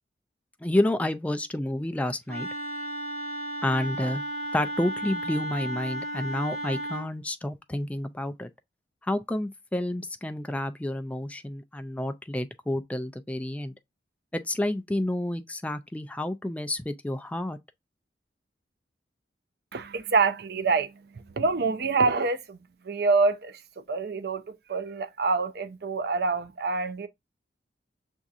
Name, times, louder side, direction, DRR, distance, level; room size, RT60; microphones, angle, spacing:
voice 1, 0.6-2.5 3.6-4.2 4.5-8.5 9.0-13.7 14.3-17.6, left 1 dB, 10° left, 0.3 m, -29 dB
Wind instrument woodwind instrument, 2.3-7.1, right 1 dB, 40° right, 1.2 m, -34 dB
voice 2, 19.7-22.6 22.8-23.6 23.9-27.1, right 4 dB, 60° right, 0.5 m, -26 dB
7.0 x 2.7 x 2.4 m
head